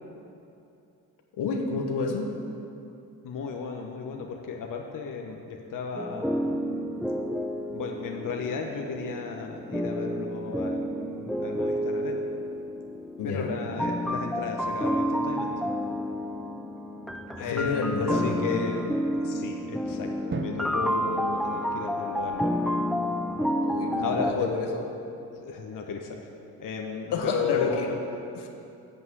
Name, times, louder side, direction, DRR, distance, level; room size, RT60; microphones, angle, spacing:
voice 1, 1.4-2.3 13.2-13.5 17.5-18.5 23.6-24.8 27.1-28.0 28.3-28.5, left 4 dB, 65° left, 3 dB, 1.2 m, -29 dB
voice 2, 3.2-6.7 7.7-12.2 13.2-15.5 17.4-22.6 24.0-24.5 25.3-26.3 26.6-28.0, left 5 dB, 45° left, 2 dB, 1.0 m, -34 dB
sound 1, 6.0-24.3, equal, ahead, 0.4 m, -30 dB
Drum, 20.3-22.8, right 4 dB, 30° right, 0.7 m, -39 dB
8.6 x 5.3 x 7.9 m, 2.7 s
hypercardioid pair, 55°, 44 cm